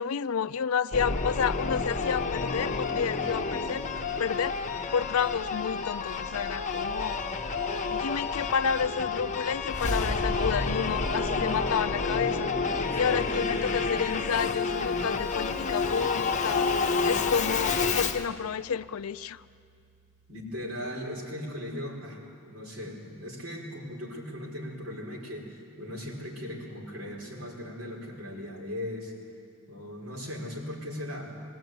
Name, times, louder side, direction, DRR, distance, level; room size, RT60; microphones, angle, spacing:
voice 1, 0.0-3.8 4.2-4.6 4.9-7.2 7.9-12.5 12.7-19.4, left 7 dB, 70° left, 14 dB, 0.4 m, -30 dB
Singing / Musical instrument, 0.9-18.3, left 4 dB, 35° left, 0.9 m, -29 dB
sound 1, 12.0-20.6, right 2 dB, 30° right, 2.0 m, -59 dB
voice 2, 13.1-13.5 20.3-22.2 22.5-29.1 29.7-31.3, left 1 dB, 65° right, -2 dB, 4.7 m, -38 dB
19.5 x 17.5 x 9.3 m, 2.3 s
head